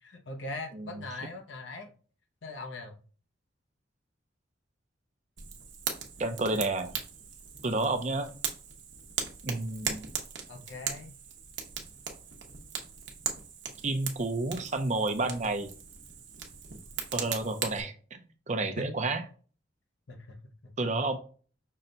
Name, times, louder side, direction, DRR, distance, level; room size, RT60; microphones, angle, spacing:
voice 1, 0.0-1.9 2.4-3.0 10.5-11.1 18.8-18.9 20.1-20.7, left 2 dB, 70° left, 5 dB, 0.8 m, -41 dB
Fire, 5.4-17.8, right 7 dB, 70° right, 0.9 m, -39 dB
voice 2, 6.2-7.0 7.6-8.3 9.4-10.0 13.8-15.7 17.1-18.2 18.5-19.2 20.8-21.2, right 2 dB, 40° right, 8 dB, 0.6 m, -30 dB
5.6 x 2.2 x 3.8 m, 0.39 s
head